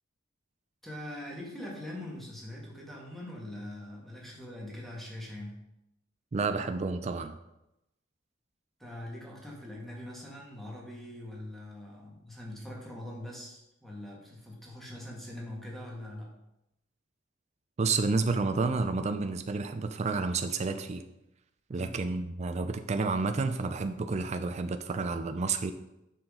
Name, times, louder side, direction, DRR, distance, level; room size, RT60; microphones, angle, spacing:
voice 1, 0.8-5.6 8.8-16.3 21.7-22.0, left 1 dB, ahead, -3 dB, 1.8 m, -42 dB
voice 2, 6.3-7.4 17.8-21.0 21.7-25.7, right 4 dB, 35° right, 7 dB, 0.4 m, -30 dB
7.0 x 5.9 x 3.8 m, 0.88 s
head